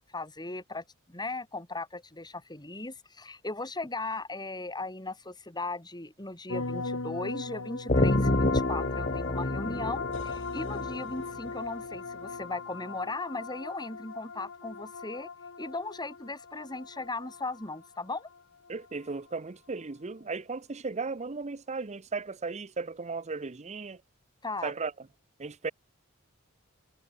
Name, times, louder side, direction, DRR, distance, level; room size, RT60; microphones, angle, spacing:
voice 1, 0.0-15.3 15.6-18.3 24.4-24.7, left 2 dB, 20° left, 4.1 m, -37 dB
sound 1, 6.5-12.9, left 2 dB, 90° left, 2.8 m, -40 dB
sound 2, 7.9-19.3, left 5 dB, 60° left, 1.1 m, -40 dB
sound 3, 7.9-11.5, left 1 dB, 35° left, 1.7 m, -28 dB
voice 2, 18.7-24.0 24.6-24.9 25.4-25.7, right 4 dB, 30° right, 0.7 m, -36 dB
head